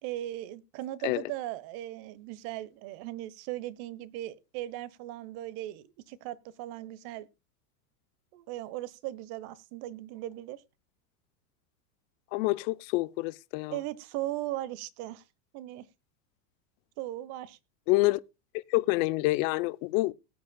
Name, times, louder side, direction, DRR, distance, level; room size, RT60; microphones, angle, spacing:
voice 1, 0.0-7.3 8.3-10.6 13.7-15.2 15.5-15.9 17.0-17.6, right 15 dB, 50° right, 1.1 m, -38 dB
voice 2, 12.3-13.8 17.9-18.2 18.5-20.1, left 21 dB, 50° left, 0.7 m, -27 dB
19.5 x 8.5 x 2.3 m
supercardioid pair, 125°, 48 cm